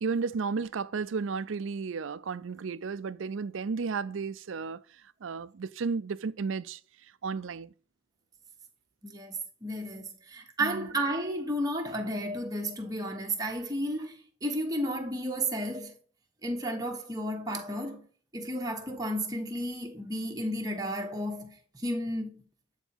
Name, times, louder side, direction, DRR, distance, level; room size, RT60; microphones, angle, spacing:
voice 1, 0.0-4.8 5.2-6.8 7.2-7.7 10.6-10.9, right 5 dB, 75° right, 0.5 m, -33 dB
voice 2, 9.0-15.9 16.4-18.1 18.3-22.4, right 1 dB, 20° right, 1.2 m, -33 dB
9.0 x 4.1 x 4.4 m
head